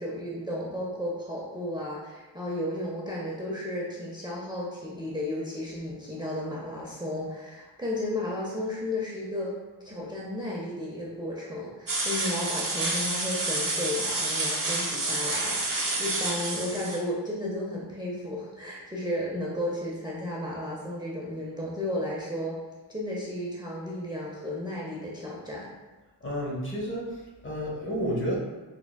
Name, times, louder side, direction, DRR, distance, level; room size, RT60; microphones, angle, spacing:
voice 1, 0.0-9.5 9.8-22.6 22.9-25.7, left 1 dB, 10° right, -5 dB, 0.6 m, -33 dB
sound 1, 11.9-17.0, right 2 dB, 55° right, 0.8 m, -29 dB
voice 2, 26.2-28.4, equal, 30° left, -4 dB, 0.8 m, -31 dB
3.7 x 3.5 x 2.2 m, 1.2 s
wide cardioid pair, 100°, 41 cm